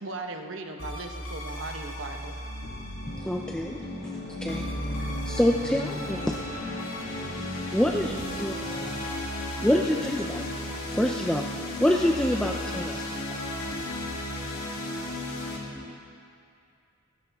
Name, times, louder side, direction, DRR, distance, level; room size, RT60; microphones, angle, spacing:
voice 1, 0.0-2.3, right 3 dB, 65° right, 4 dB, 1.1 m, -37 dB
sound 1, 0.8-15.6, left 1 dB, 80° left, 2.6 m, -34 dB
sound 2, 3.0-9.1, equal, 90° right, 3.4 m, -46 dB
voice 2, 3.1-6.4 7.7-8.6 9.6-11.4 11.8-13.4 15.7-15.8, equal, 5° left, 1 dB, 0.5 m, -27 dB
25.5 x 11.5 x 3.6 m, 2.4 s
head